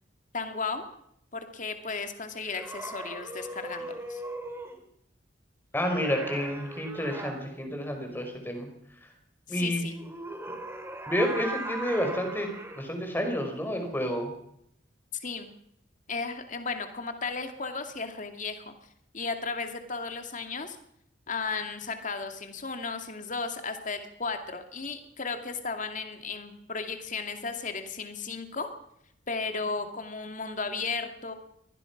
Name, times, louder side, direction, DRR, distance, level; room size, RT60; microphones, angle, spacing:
voice 1, 0.3-0.9 1.3-4.2 9.5-10.0 15.2-15.5 16.1-18.7 19.1-20.8 21.3-28.7 29.3-31.3, left 4 dB, 45° left, 6 dB, 2.5 m, -35 dB
sound 1, 2.4-4.8 5.8-7.3 9.9-12.8, right 1 dB, 15° right, 3.1 m, -39 dB
voice 2, 5.7-8.7 9.5-9.8 11.1-12.5 12.8-14.3, equal, 10° left, 4 dB, 5.0 m, -29 dB
24.0 x 19.5 x 6.0 m, 0.74 s
head